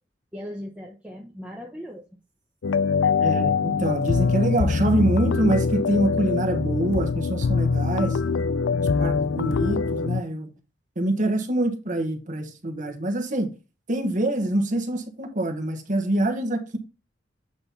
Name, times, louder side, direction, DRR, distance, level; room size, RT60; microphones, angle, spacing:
voice 1, 0.3-2.0 8.2-8.6, equal, 5° right, 0.8 m, -38 dB
sound 1, 2.6-10.2, left 5 dB, 85° left, 0.4 m, -23 dB
voice 2, 3.2-8.2 9.0-10.5 11.0-13.5 13.9-16.8, right 1 dB, 45° right, 1.3 m, -25 dB
7.9 x 4.2 x 4.1 m
head